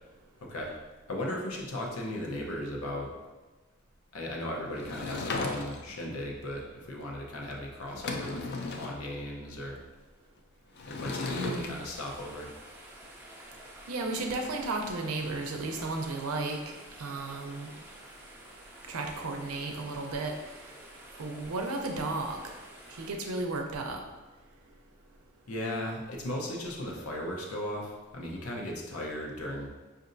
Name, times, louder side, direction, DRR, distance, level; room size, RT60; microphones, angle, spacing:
voice 1, 0.4-0.8 1.1-3.1 4.1-8.5 8.7-9.8 10.9-12.5 25.5-29.7, left 1 dB, 85° left, -1 dB, 0.8 m, -36 dB
Sliding door / Wood, 4.8-6.0 7.5-7.6 7.9-9.0 10.8-11.7, left 3 dB, 50° left, 0.4 m, -35 dB
sound 1, 11.2-23.1, right 1 dB, 10° right, 0.5 m, -50 dB
voice 2, 11.3-11.7 13.9-17.7 18.9-20.3 21.2-22.4 22.9-24.0, right 2 dB, 90° right, 3 dB, 0.6 m, -34 dB
5.3 x 2.6 x 2.6 m, 1.2 s
head